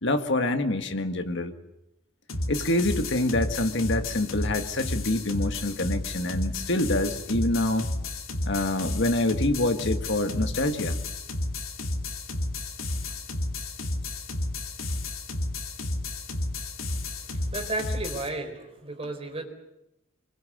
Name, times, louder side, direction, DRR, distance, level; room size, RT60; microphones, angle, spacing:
voice 1, 0.0-1.5 2.5-7.9 8.4-11.0, left 1 dB, 60° left, 7 dB, 1.8 m, -26 dB
sound 1, 2.3-18.3, left 2 dB, 85° left, 2.7 m, -32 dB
voice 2, 17.5-19.4, right 2 dB, 30° right, 4 dB, 4.3 m, -33 dB
25.5 x 23.0 x 7.9 m, 0.88 s
head